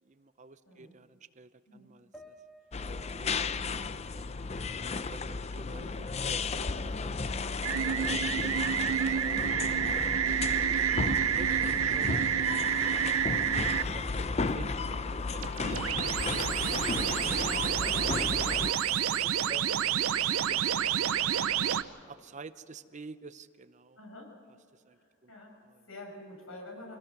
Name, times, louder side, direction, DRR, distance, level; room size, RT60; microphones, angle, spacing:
voice 1, 0.0-2.3 3.1-7.8 8.9-10.8 11.3-13.4 13.7-16.7 17.2-18.2 18.8-19.6 19.9-20.7 22.1-24.0 24.7-25.3 25.6-25.8, right 3 dB, 35° right, 13 dB, 0.6 m, -50 dB
voice 2, 0.6-1.0 1.7-1.9 3.4-3.7 19.5-19.7 20.8-21.0 24.0-24.4 24.9-25.6 25.9-27.0, left 1 dB, 75° left, 0 dB, 6.5 m, -49 dB
sound 1, 2.1-5.5 5.9-7.0, equal, 5° left, 1.3 m, -58 dB
sound 2, 2.7-18.7, left 4 dB, 30° left, 0.5 m, -34 dB
sound 3, 7.6-13.8 15.4-21.8, right 9 dB, 85° right, 0.6 m, -29 dB
25.5 x 18.0 x 6.0 m, 2.4 s
head